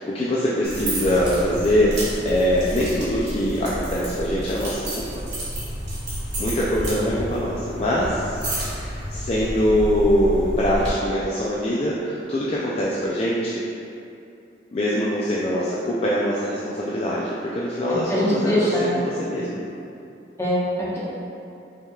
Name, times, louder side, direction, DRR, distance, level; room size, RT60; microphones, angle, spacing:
voice 1, 0.0-2.0 2.2-5.2 6.4-8.4 8.7-13.6 14.7-19.6, equal, 35° left, -6 dB, 0.3 m, -23 dB
sound 1, 0.6-10.9, right 1 dB, 75° right, 1.3 m, -30 dB
voice 2, 18.1-18.9 20.4-21.0, equal, 15° left, -9 dB, 0.9 m, -22 dB
5.4 x 3.4 x 2.3 m, 2.6 s
head